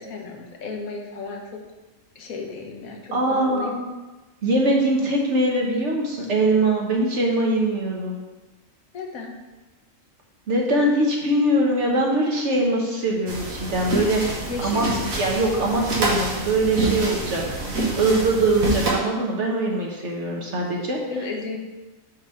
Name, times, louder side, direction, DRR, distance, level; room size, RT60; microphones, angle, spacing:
voice 1, 0.0-1.6 2.1-3.7 8.9-9.3 14.5-15.1 21.1-21.6, left 3 dB, 90° left, 2 dB, 1.3 m, -33 dB
voice 2, 3.1-3.8 4.4-8.2 10.5-14.2 14.6-14.9 15.2-17.4 17.9-21.0, right 1 dB, 60° right, 0 dB, 1.4 m, -22 dB
sound 1, 13.3-18.9, right 2 dB, 80° right, 1.7 m, -27 dB
5.8 x 3.5 x 5.6 m, 1.1 s
omnidirectional pair, 1.4 m